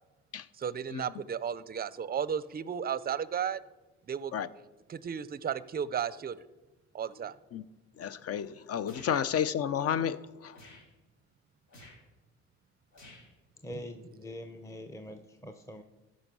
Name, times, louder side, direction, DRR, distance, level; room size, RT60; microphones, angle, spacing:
voice 1, 0.6-3.6 4.1-4.3 4.9-6.4 6.9-7.3, right 8 dB, 30° right, 0.5 m, -34 dB
voice 2, 8.0-10.5, left 8 dB, 55° left, 0.6 m, -31 dB
sound 1, 8.9-9.2 10.5-10.9 11.7-12.0 12.9-13.3, left 1 dB, 75° left, 4.2 m, -52 dB
voice 3, 13.6-15.8, left 1 dB, 10° left, 0.7 m, -43 dB
14.0 x 5.2 x 6.2 m
cardioid pair, 90°, 30 cm